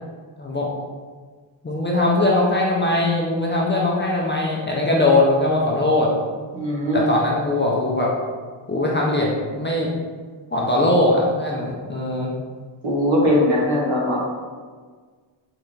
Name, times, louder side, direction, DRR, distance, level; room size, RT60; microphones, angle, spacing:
voice 1, 1.6-6.1 6.9-8.1 8.7-9.9 10.5-12.3, left 2 dB, 25° left, -3 dB, 0.4 m, -20 dB
voice 2, 6.5-7.1 12.8-14.2, left 1 dB, 75° right, -4 dB, 1.1 m, -20 dB
3.3 x 2.5 x 3.1 m, 1.6 s
wide cardioid pair, 120°, 48 cm